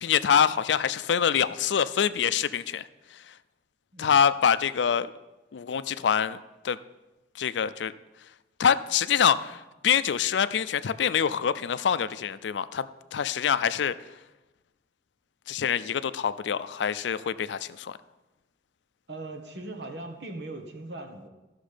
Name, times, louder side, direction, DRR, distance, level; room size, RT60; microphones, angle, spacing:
voice 1, 0.0-3.3 4.0-5.1 5.5-6.4 6.6-6.8 7.3-7.9 8.6-13.9 15.5-18.0, left 7 dB, 80° left, 14 dB, 0.4 m, -25 dB
voice 2, 19.1-21.3, right 2 dB, 70° right, 5 dB, 1.4 m, -39 dB
13.0 x 6.4 x 5.1 m, 1.1 s
head